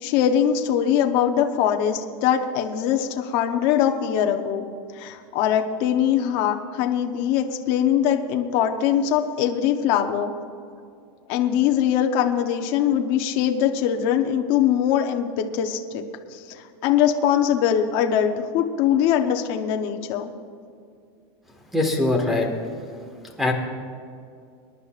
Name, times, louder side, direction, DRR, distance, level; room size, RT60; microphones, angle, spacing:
voice 1, 0.0-4.6 4.9-10.3 11.3-16.0 16.3-20.3, left 9 dB, 40° left, 4 dB, 0.8 m, -22 dB
voice 2, 21.7-22.5 23.4-23.5, left 2 dB, ahead, 2 dB, 1.5 m, -21 dB
26.0 x 11.0 x 2.4 m, 2.4 s
supercardioid pair, 175°, 14 cm